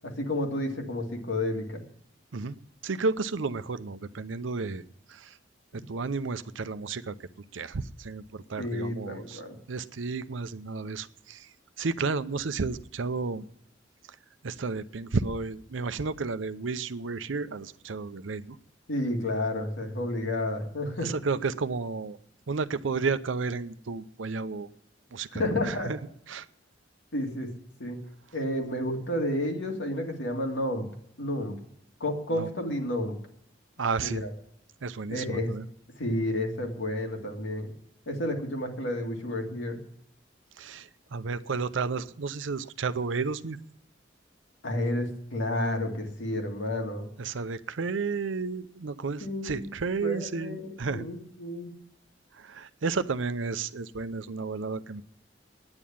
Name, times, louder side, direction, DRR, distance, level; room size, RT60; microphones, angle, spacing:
voice 1, 0.0-1.8 5.7-5.8 8.6-9.6 18.9-21.1 25.3-25.9 27.1-27.5 27.8-28.0 28.3-30.8 31.2-31.5 32.0-33.1 34.0-34.3 35.1-35.6 36.0-37.7 38.1-39.8 44.6-47.0 49.2-49.7 50.0-51.7, left 1 dB, 80° left, 2 dB, 2.2 m, -31 dB
voice 2, 2.8-4.8 5.1-5.3 5.9-7.2 7.5-9.4 9.7-11.5 11.8-13.5 14.4-18.6 21.0-22.2 22.5-24.7 25.1-26.0 26.3-26.5 32.3-32.5 33.8-34.2 34.8-35.7 40.6-43.6 47.2-51.1 52.4-55.0, right 4 dB, 80° right, 14 dB, 0.6 m, -32 dB
9.7 x 9.3 x 8.7 m, 0.69 s
head